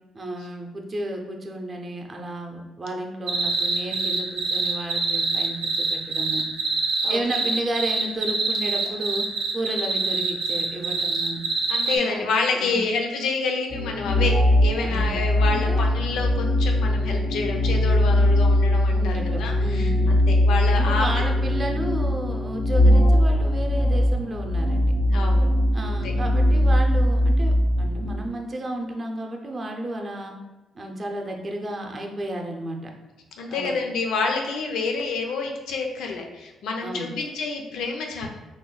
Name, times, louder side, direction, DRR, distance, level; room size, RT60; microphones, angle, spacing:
voice 1, 0.1-6.5 7.1-9.3 9.5-11.4 11.9-12.3 12.6-12.8 14.8-15.8 18.9-20.3 20.8-24.9 25.7-30.3 30.7-32.9 33.5-33.8 36.8-37.1, right 1 dB, 35° right, 2 dB, 0.6 m, -32 dB
sound 1, 3.3-12.0, right 3 dB, 80° right, 0.6 m, -24 dB
voice 2, 11.7-14.3 14.6-19.9 20.3-21.1 25.1-25.5 25.8-26.1 33.4-38.3, left 4 dB, 80° left, 2 dB, 0.5 m, -28 dB
sound 2, 13.7-28.3, left 1 dB, 35° left, 0.5 m, -20 dB
3.0 x 2.2 x 3.9 m, 1.1 s
cardioid pair, 90°, 0 cm